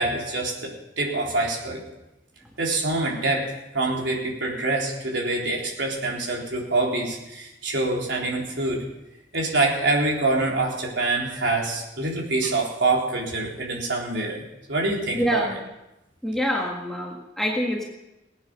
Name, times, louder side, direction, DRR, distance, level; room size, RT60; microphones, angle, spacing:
voice 1, 0.0-1.8 2.6-8.8 9.3-14.4 14.7-15.5, right 2 dB, 70° right, -2 dB, 4.0 m, -25 dB
voice 2, 15.1-15.6 16.2-17.8, equal, ahead, -2 dB, 1.7 m, -26 dB
19.0 x 9.5 x 6.6 m, 0.95 s
head